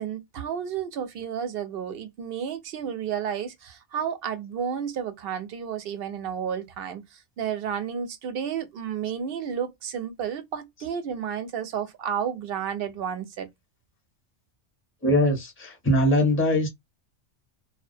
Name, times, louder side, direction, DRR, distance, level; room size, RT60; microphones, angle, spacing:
voice 1, 0.0-13.5, right 8 dB, 60° right, 0.7 m, -32 dB
voice 2, 15.0-16.7, equal, 15° left, 0.7 m, -21 dB
2.3 x 2.1 x 2.5 m
omnidirectional pair, 1.2 m